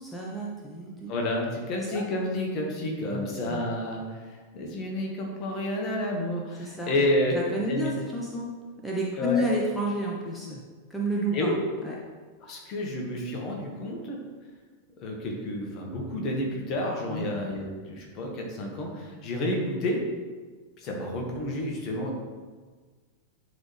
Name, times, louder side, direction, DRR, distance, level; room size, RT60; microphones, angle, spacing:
voice 1, 0.0-1.2 1.8-2.0 3.1-3.6 6.6-6.9 7.3-8.5 8.8-10.6 10.9-11.5 11.8-11.9 17.1-17.3, equal, 5° left, -4 dB, 1.1 m, -31 dB
voice 2, 1.1-7.4 7.7-7.9 9.2-9.5 11.3-11.5 12.4-14.2 15.0-20.0 20.8-22.1, left 1 dB, 35° left, 0 dB, 1.6 m, -30 dB
10.5 x 4.1 x 3.4 m, 1.5 s
figure-of-eight pair, 90°, 0 cm